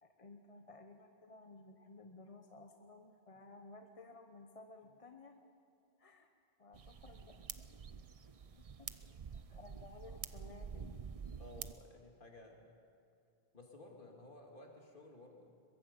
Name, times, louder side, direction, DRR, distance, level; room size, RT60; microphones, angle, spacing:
voice 1, 0.0-5.4 6.0-6.3 6.6-11.1, left 3 dB, 35° left, 5 dB, 0.9 m, -57 dB
sound 1, 6.7-11.7, right 6 dB, 45° right, 0.5 m, -48 dB
voice 2, 11.4-12.6 13.5-15.5, left 2 dB, 55° left, 1 dB, 2.5 m, -55 dB
22.5 x 22.0 x 5.3 m, 2.4 s
omnidirectional pair, 1.1 m